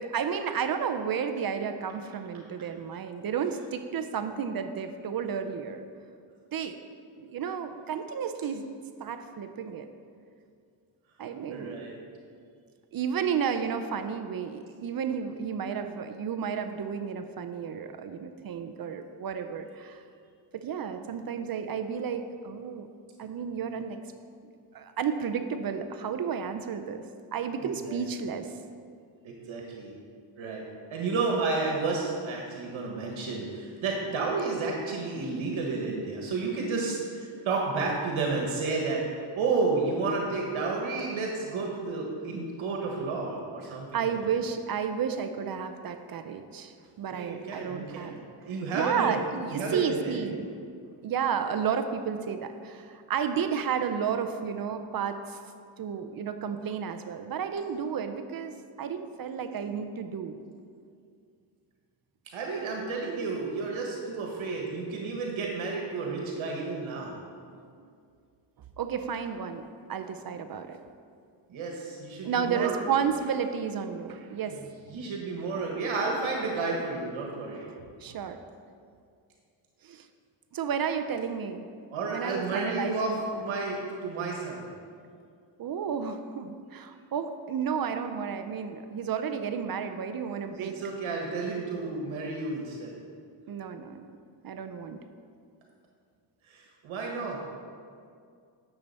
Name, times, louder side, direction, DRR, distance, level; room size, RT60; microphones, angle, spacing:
voice 1, 0.0-5.9 6.5-6.8 7.2-8.7 9.0-9.9 11.2-11.8 12.9-20.0 20.5-22.9 23.2-24.0 24.7-27.0 27.3-28.5 43.9-48.2 48.7-50.5 51.0-55.4 55.8-60.4 68.8-70.8 72.2-74.6 78.0-78.4 79.8-80.1 80.5-81.7 82.1-83.2 85.6-90.7 93.5-94.0 94.4-95.0, right 7 dB, 45° right, 8 dB, 0.6 m, -32 dB
voice 2, 11.5-12.0 27.6-28.0 29.2-29.9 30.4-30.6 30.9-39.0 39.3-44.2 47.1-48.2 48.4-50.3 62.3-67.2 71.5-72.8 74.4-74.5 74.9-77.7 81.9-84.7 90.5-92.9 96.5-97.4, right 3 dB, 70° right, -1 dB, 1.4 m, -31 dB
9.9 x 6.9 x 4.2 m, 2.3 s
cardioid pair, 125°, 49 cm